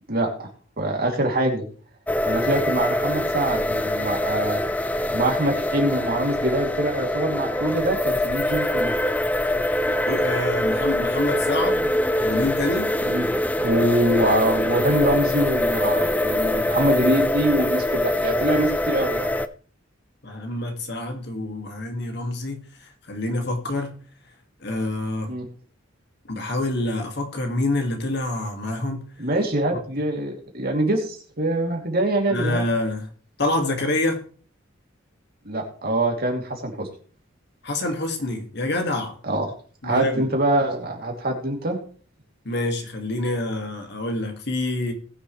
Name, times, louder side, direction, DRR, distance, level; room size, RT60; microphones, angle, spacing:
voice 1, 0.1-0.5 0.8-1.6 2.2-4.6 5.1-8.9 13.0-13.3 13.6-19.3 25.3-25.4 29.2-32.6 35.4-36.9 39.2-39.4 39.8-41.8, right 1 dB, 50° right, 2.7 m, -24 dB
sound 1, 2.1-19.5, left 1 dB, 10° left, 0.4 m, -24 dB
voice 2, 10.1-11.9 12.2-12.9 20.2-24.0 24.6-25.4 26.3-29.0 32.3-33.1 33.4-34.2 37.6-39.2 39.8-40.3 42.5-44.9, left 2 dB, 55° left, 2.0 m, -26 dB
20.0 x 6.9 x 3.2 m
head